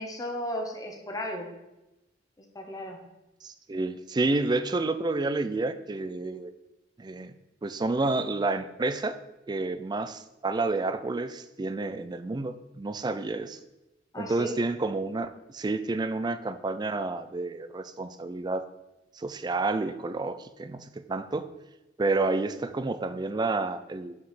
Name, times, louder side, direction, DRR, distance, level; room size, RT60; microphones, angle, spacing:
voice 1, 0.0-1.5 2.4-3.0 14.1-14.5, equal, 20° left, 2 dB, 0.9 m, -35 dB
voice 2, 3.4-6.5 7.0-7.3 7.6-9.2 9.5-13.6 14.2-18.7 19.1-21.5 22.0-24.2, right 3 dB, 25° right, 12 dB, 0.4 m, -30 dB
5.8 x 5.0 x 5.7 m, 0.96 s
head